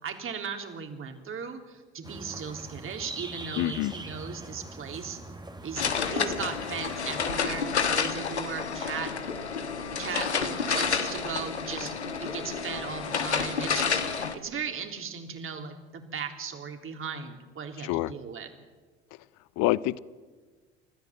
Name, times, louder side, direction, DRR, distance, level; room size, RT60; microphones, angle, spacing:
voice 1, 0.0-5.2 5.6-9.1 10.0-11.9 12.2-18.5, right 6 dB, 40° right, 4 dB, 3.7 m, -37 dB
sound 1, 2.0-7.3, right 2 dB, 15° right, 2.3 m, -43 dB
voice 2, 3.6-3.9 17.8-18.1 19.1-19.2 19.6-20.0, left 17 dB, 55° left, 20 dB, 0.8 m, -27 dB
sound 2, 5.8-14.3, left 6 dB, 85° left, 1.4 m, -30 dB
29.0 x 14.5 x 7.8 m, 1.4 s
figure-of-eight pair, 60°, 33 cm